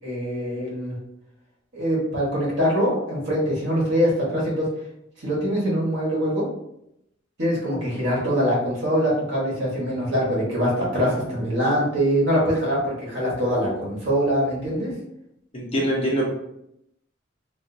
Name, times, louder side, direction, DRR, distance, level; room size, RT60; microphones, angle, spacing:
voice 1, 0.0-0.9 1.7-4.6 5.2-6.5 7.4-14.9, equal, 65° right, -5 dB, 1.4 m, -23 dB
voice 2, 15.5-16.3, right 1 dB, 30° left, -4 dB, 0.9 m, -23 dB
3.6 x 2.5 x 2.6 m, 0.79 s
head